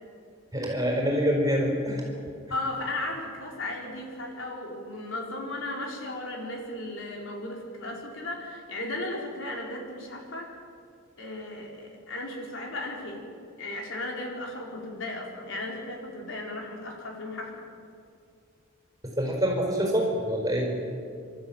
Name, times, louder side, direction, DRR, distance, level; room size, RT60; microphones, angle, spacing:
voice 1, 0.5-2.0 19.0-20.7, equal, 15° right, 0 dB, 4.8 m, -26 dB
voice 2, 2.5-10.6 11.2-13.2 13.6-17.6, left 2 dB, 65° left, 0 dB, 4.4 m, -35 dB
29.5 x 13.5 x 9.0 m, 2.4 s
head